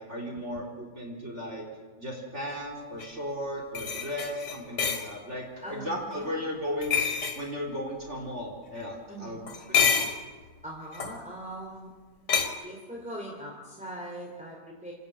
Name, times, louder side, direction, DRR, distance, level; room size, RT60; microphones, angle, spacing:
voice 1, 0.0-1.7 2.0-7.0 7.4-10.1, equal, 40° right, -1 dB, 4.2 m, -36 dB
sound 1, 3.0-3.1 3.7-5.1 6.8-7.4 9.5-10.2 10.9-11.2 12.3-12.5, left 6 dB, 85° left, 2.8 m, -27 dB
voice 2, 5.6-6.3 9.1-9.4 10.6-11.9 12.6-14.9, right 1 dB, 5° right, -2 dB, 3.5 m, -41 dB
28.0 x 13.5 x 8.6 m, 1.4 s
omnidirectional pair, 1.8 m